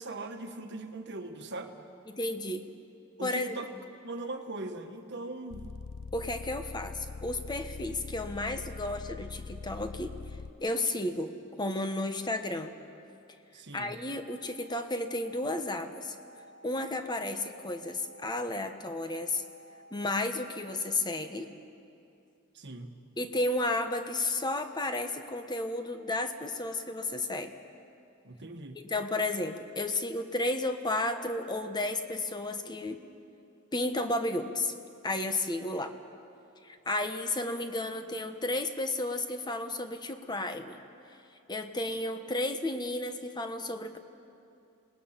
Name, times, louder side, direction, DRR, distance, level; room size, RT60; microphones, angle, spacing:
voice 1, 0.0-1.7 3.2-3.7 4.0-5.7 13.5-13.9 22.5-23.0 28.2-28.8, right 2 dB, 55° right, 6 dB, 1.4 m, -40 dB
voice 2, 2.1-2.6 3.2-3.8 6.1-10.1 10.6-12.7 13.7-16.2 16.6-19.4 19.9-21.5 23.2-27.5 28.8-33.0 33.7-34.7 35.0-36.0 36.6-40.8 41.5-44.0, left 2 dB, 20° left, 7 dB, 1.0 m, -32 dB
sound 1, 5.5-10.5, left 4 dB, 75° left, 0.6 m, -42 dB
sound 2, 14.2-21.0, equal, 55° left, 2.5 m, -54 dB
27.5 x 19.5 x 5.8 m, 2.6 s
head